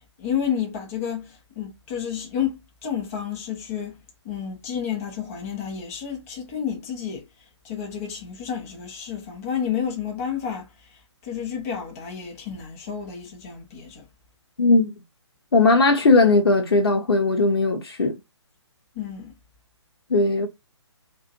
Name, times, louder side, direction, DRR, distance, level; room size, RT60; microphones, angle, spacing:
voice 1, 0.2-4.0 4.2-7.2 7.6-10.7 11.2-14.1 18.9-19.3, left 8 dB, 30° left, 1.0 m, -30 dB
voice 2, 14.6-14.9 15.5-18.2 20.1-20.5, left 3 dB, 55° left, 0.9 m, -18 dB
2.6 x 2.5 x 2.5 m
figure-of-eight pair, 135°, 15 cm